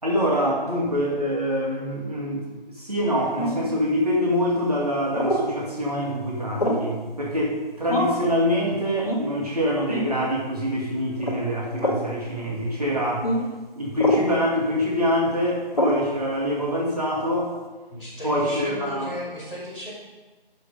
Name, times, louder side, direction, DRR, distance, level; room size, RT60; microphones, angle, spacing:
voice 1, 0.0-2.5 2.7-13.3 13.8-17.5 18.2-19.1, equal, 40° right, -4 dB, 2.0 m, -25 dB
sound 1, 3.4-3.7 5.1-5.5 6.6-6.9 7.9-8.3 9.0-9.3 9.9-10.1 11.2-11.4 11.8-12.0 13.2-13.4 14.0-14.3 15.7-16.0, equal, 40° left, 1.9 m, -24 dB
voice 2, 17.9-19.9, left 1 dB, 5° right, -17 dB, 3.0 m, -35 dB
12.5 x 6.6 x 5.2 m, 1.2 s
figure-of-eight pair, 175°, 29 cm